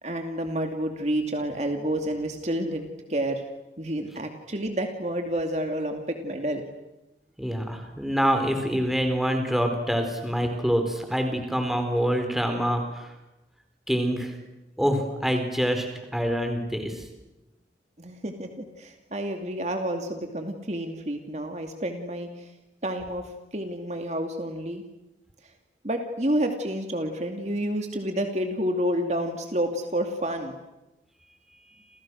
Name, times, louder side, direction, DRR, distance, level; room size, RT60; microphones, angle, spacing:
voice 1, 0.0-3.4 3.8-6.6 18.0-22.5 22.8-24.8 25.8-30.5, right 1 dB, 40° right, 5 dB, 2.5 m, -29 dB
voice 2, 7.4-13.1 13.9-14.3 14.8-17.1, equal, ahead, 5 dB, 4.4 m, -26 dB
30.0 x 29.0 x 6.4 m, 0.99 s
head